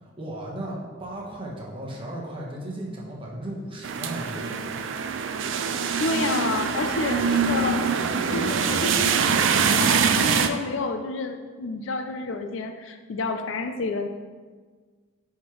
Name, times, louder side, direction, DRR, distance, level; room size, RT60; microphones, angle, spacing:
voice 1, 0.0-4.8, right 1 dB, 25° right, -3 dB, 1.1 m, -36 dB
sound 1, 3.8-10.5, right 6 dB, 65° right, 0.4 m, -24 dB
voice 2, 6.0-7.8 8.3-14.1, left 3 dB, 70° left, 6 dB, 0.4 m, -30 dB
9.2 x 3.6 x 3.1 m, 1.5 s
head